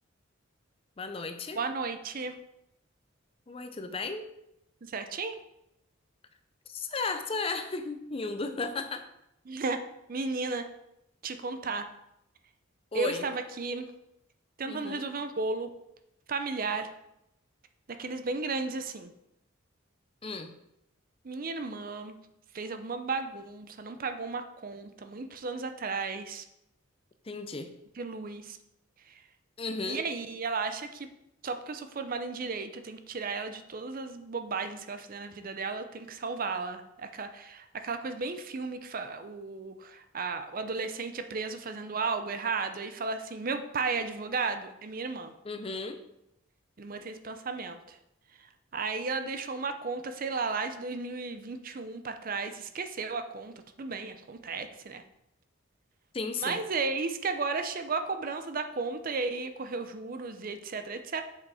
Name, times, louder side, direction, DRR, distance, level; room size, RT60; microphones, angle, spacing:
voice 1, 1.0-1.6 3.5-4.3 6.7-9.0 12.9-13.3 14.6-15.1 20.2-20.5 27.2-27.7 29.6-30.1 45.4-46.0 56.1-56.6, left 3 dB, 25° left, 8 dB, 0.5 m, -35 dB
voice 2, 1.6-2.4 4.8-5.4 9.5-9.8 10.1-10.7 11.2-11.9 12.9-13.9 14.6-15.7 16.3-16.9 17.9-19.1 21.2-22.2 22.5-26.4 28.0-28.6 29.9-31.1 31.4-45.3 46.8-48.0 48.7-55.0 56.4-61.2, right 4 dB, 40° right, 9 dB, 0.5 m, -34 dB
7.2 x 5.4 x 4.2 m, 0.83 s
head